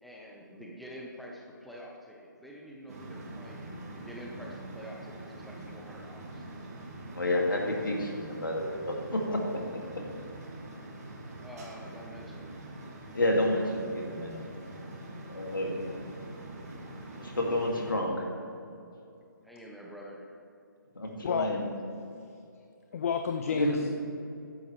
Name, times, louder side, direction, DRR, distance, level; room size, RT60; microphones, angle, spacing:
voice 1, 0.0-6.4 11.4-12.5 19.4-20.3, equal, ahead, -3 dB, 1.0 m, -47 dB
sound 1, 2.9-17.9, right 1 dB, 45° right, 2.5 m, -44 dB
voice 2, 7.1-9.4 13.1-14.4 15.3-16.0 17.1-18.2 20.9-21.6 23.5-23.8, left 1 dB, 75° left, 0 dB, 2.3 m, -30 dB
voice 3, 22.9-23.9, left 6 dB, 40° left, 7 dB, 0.5 m, -30 dB
14.0 x 10.0 x 3.3 m, 2.6 s
figure-of-eight pair, 140°, 11 cm